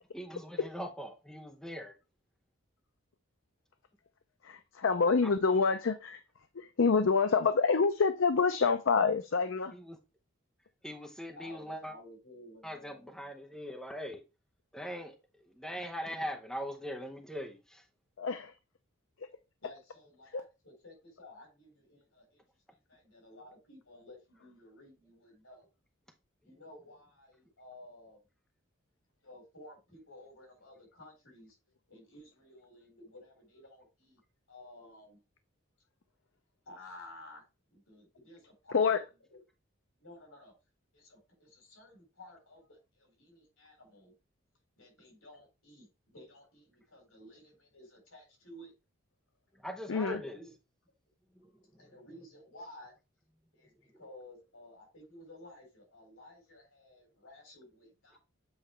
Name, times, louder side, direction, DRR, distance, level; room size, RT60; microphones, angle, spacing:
voice 1, 0.1-1.9 5.2-5.3 9.8-10.0 10.8-11.9 12.6-14.2 14.7-15.1 15.6-17.8 49.6-50.4 51.4-51.5 51.8-52.0, equal, ahead, 0.8 m, -41 dB
voice 2, 4.4-6.2 6.5-9.7 18.2-18.6 19.2-19.3 20.3-20.4 38.7-39.0 49.9-50.2, left 5 dB, 65° left, 0.5 m, -27 dB
voice 3, 11.3-13.3 19.6-22.4 22.7-25.7 26.4-28.2 29.2-31.6 31.9-34.2 34.5-35.2 36.7-37.4 37.7-38.9 39.3-39.4 40.0-40.5 40.9-44.1 44.8-48.7 49.9-50.5 51.8-52.9 53.5-58.2, left 1 dB, 80° left, 4.2 m, -54 dB
8.0 x 4.5 x 3.2 m
head